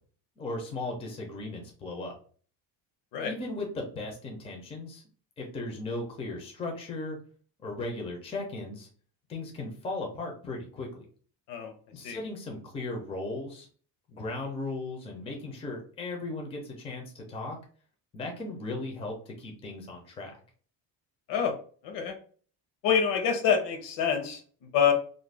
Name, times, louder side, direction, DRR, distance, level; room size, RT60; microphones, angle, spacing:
voice 1, 0.4-2.2 3.2-5.0 5.4-7.2 7.6-8.9 9.3-11.0 11.9-13.7 14.1-17.6 18.1-20.3, left 2 dB, 15° left, 1 dB, 0.4 m, -37 dB
voice 2, 21.8-22.2 22.8-24.9, left 7 dB, 75° left, 6 dB, 0.8 m, -26 dB
2.5 x 2.1 x 3.2 m, 0.43 s
cardioid pair, 165°, 43 cm